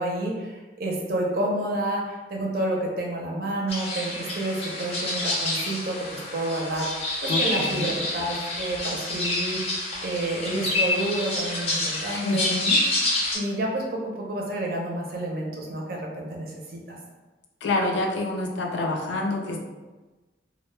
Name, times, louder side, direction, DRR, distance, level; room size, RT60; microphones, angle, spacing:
voice 1, 0.0-9.6 10.0-12.5 13.3-17.0, right 1 dB, 55° right, -1 dB, 0.5 m, -29 dB
sound 1, 3.7-13.4, left 2 dB, 35° left, 0.5 m, -28 dB
voice 2, 7.3-7.9 12.2-12.8 17.6-19.6, left 2 dB, 90° left, 1 dB, 0.4 m, -27 dB
2.1 x 2.0 x 3.1 m, 1.2 s
head